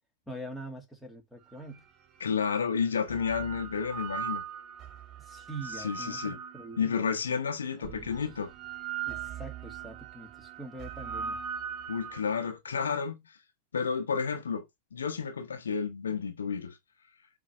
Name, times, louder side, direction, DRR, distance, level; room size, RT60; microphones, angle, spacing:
voice 1, 0.3-1.8 5.2-7.2 7.8-8.2 9.1-11.4, right 1 dB, ahead, 2.4 m, -44 dB
sound 1, 1.8-1.9 2.8-7.1 7.8-12.5, right 8 dB, 35° right, 0.8 m, -40 dB
voice 2, 2.2-4.4 5.7-6.4 6.8-8.5 11.9-13.2 13.7-14.6 14.9-16.8, left 6 dB, 70° left, 1.2 m, -31 dB
8.5 x 3.6 x 5.5 m
figure-of-eight pair, 90°, 0 cm